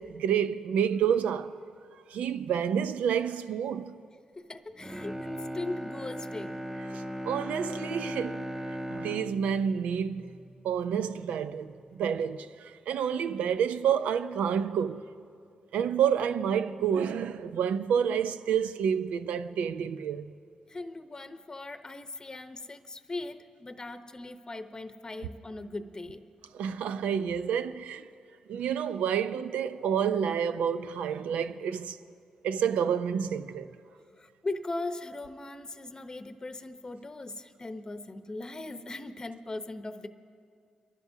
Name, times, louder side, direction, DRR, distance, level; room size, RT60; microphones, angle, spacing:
voice 1, 0.0-1.5 2.1-3.9 6.9-8.4 8.9-10.4 10.6-15.0 15.7-20.3 26.5-28.1 28.5-32.0 32.4-33.7, right 8 dB, 85° right, 0.4 m, -29 dB
voice 2, 4.4-6.6 20.7-26.2 34.2-40.1, left 2 dB, 30° left, 0.8 m, -39 dB
Bowed string instrument, 4.7-11.0 11.4-11.5, equal, 15° right, 0.9 m, -38 dB
29.0 x 12.0 x 2.7 m
cardioid pair, 55°, 2 cm